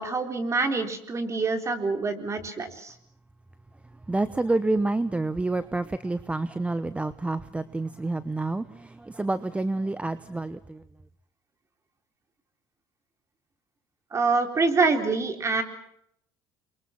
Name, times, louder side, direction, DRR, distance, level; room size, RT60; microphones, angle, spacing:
voice 1, 0.0-2.9 14.1-15.6, right 3 dB, 30° right, 6 dB, 4.0 m, -26 dB
voice 2, 4.1-10.8, right 2 dB, 10° right, 14 dB, 0.9 m, -28 dB
28.5 x 23.5 x 6.0 m, 0.72 s
supercardioid pair, 100°, 10 cm